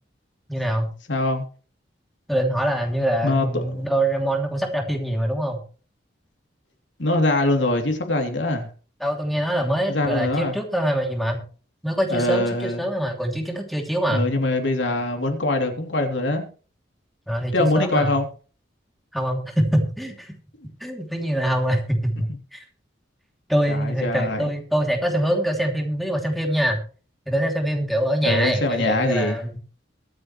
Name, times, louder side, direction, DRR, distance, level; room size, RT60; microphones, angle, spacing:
voice 1, 0.5-0.9 2.3-5.6 9.0-11.4 11.8-14.2 17.3-18.2 19.1-20.3 20.8-22.6 23.5-26.8 27.3-29.6, right 1 dB, ahead, 2 dB, 2.9 m, -24 dB
voice 2, 1.1-1.4 3.2-3.9 7.0-8.7 9.9-10.5 12.1-12.8 14.1-16.4 17.5-18.3 23.7-24.4 28.2-29.4, left 2 dB, 80° left, 3 dB, 3.1 m, -23 dB
23.0 x 7.8 x 3.2 m, 0.38 s
head